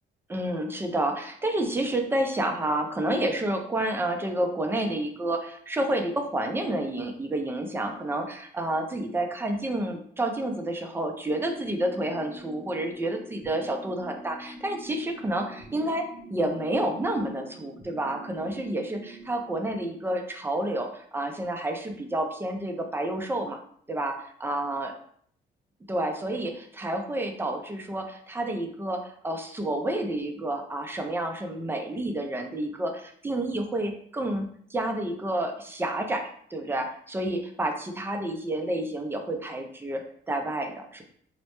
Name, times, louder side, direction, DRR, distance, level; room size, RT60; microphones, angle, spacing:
voice 1, 0.3-23.6 23.9-24.9 25.9-41.0, right 1 dB, 10° right, 4 dB, 0.4 m, -29 dB
sound 1, 11.3-20.0, right 1 dB, 25° right, 0.8 m, -46 dB
2.1 x 2.0 x 2.9 m, 0.62 s
cardioid pair, 90°, 20 cm